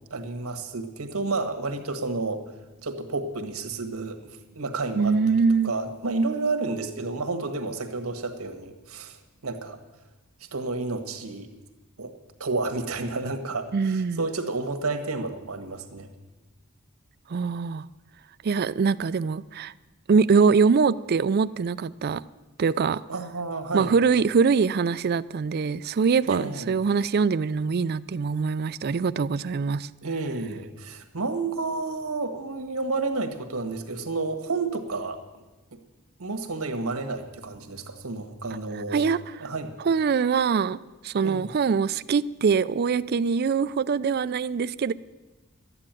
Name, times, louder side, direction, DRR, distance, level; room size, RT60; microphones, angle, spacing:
voice 1, 0.1-2.4 2.8-5.4 5.6-9.8 10.5-11.5 12.0-12.1 12.4-16.1 23.1-23.9 26.3-26.7 30.0-35.4 36.2-39.0 39.4-39.7 41.2-41.5, right 3 dB, 90° right, 7 dB, 1.5 m, -31 dB
voice 2, 4.9-5.7 13.7-14.3 17.3-17.9 18.4-19.7 20.1-22.2 22.6-23.0 23.7-29.9 38.9-39.2 39.8-40.8 41.0-44.9, right 5 dB, 45° right, 15 dB, 0.4 m, -23 dB
12.5 x 9.8 x 9.0 m, 1.1 s
head